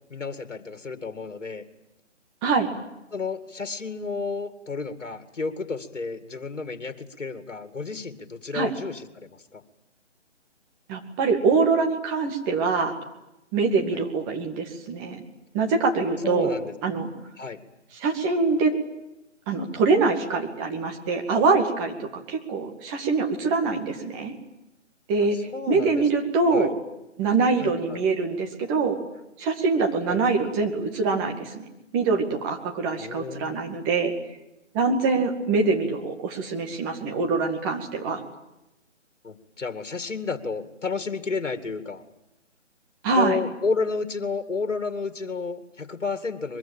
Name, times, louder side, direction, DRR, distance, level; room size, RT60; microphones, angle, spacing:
voice 1, 0.1-1.6 3.1-9.6 13.9-14.0 16.2-16.7 17.4-17.6 25.5-26.0 26.5-26.7 27.6-28.0 30.1-30.2 33.0-33.6 39.2-42.0 43.1-46.6, left 4 dB, 75° left, 8 dB, 2.3 m, -31 dB
voice 2, 10.9-12.9 13.5-15.2 15.5-16.5 16.8-17.1 18.0-18.7 19.5-24.3 25.1-25.4 25.7-26.7 27.2-29.0 29.4-31.7 31.9-34.1 34.7-38.2 43.0-43.4, right 4 dB, 15° right, 3 dB, 2.2 m, -24 dB
23.0 x 22.5 x 8.8 m, 0.92 s
figure-of-eight pair, 150°, 36 cm